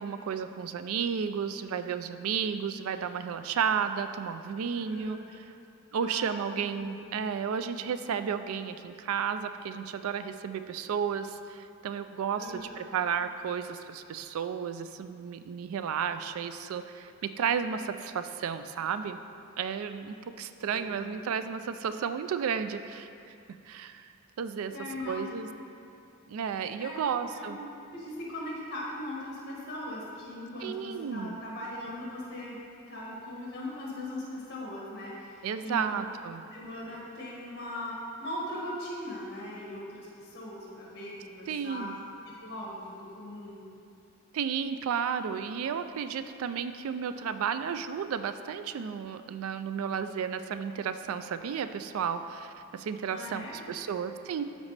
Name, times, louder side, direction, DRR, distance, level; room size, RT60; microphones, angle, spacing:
voice 1, 0.0-5.2 5.9-19.2 19.6-24.0 24.4-24.7 25.1-25.5 26.3-27.6 30.6-31.4 35.4-36.4 41.5-42.0 44.3-54.4, right 7 dB, 80° right, 10 dB, 0.3 m, -33 dB
voice 2, 4.7-5.2 6.0-6.3 6.8-6.9 12.3-12.8 20.7-21.1 24.7-25.5 26.8-27.0 27.3-27.5 27.9-32.6 32.9-36.1 36.5-41.9 42.4-43.6 53.1-53.7, left 1 dB, 50° left, -5 dB, 1.8 m, -39 dB
12.0 x 4.1 x 3.2 m, 2.6 s
head